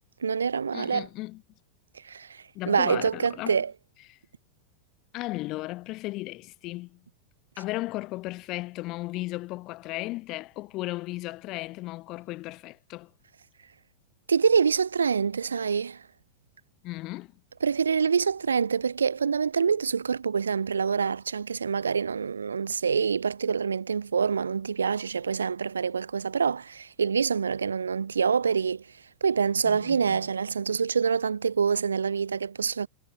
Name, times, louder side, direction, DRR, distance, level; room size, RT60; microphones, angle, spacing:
voice 1, 0.2-1.1 2.0-3.7 14.3-16.0 17.6-28.8 29.2-32.9, right 6 dB, 70° right, 1.4 m, -26 dB
voice 2, 0.7-1.4 2.6-3.6 4.1-4.2 5.1-7.0 7.6-13.1 16.8-17.3 29.6-30.2, left 19 dB, 40° left, 1.9 m, -35 dB
figure-of-eight pair, 90°, 0 cm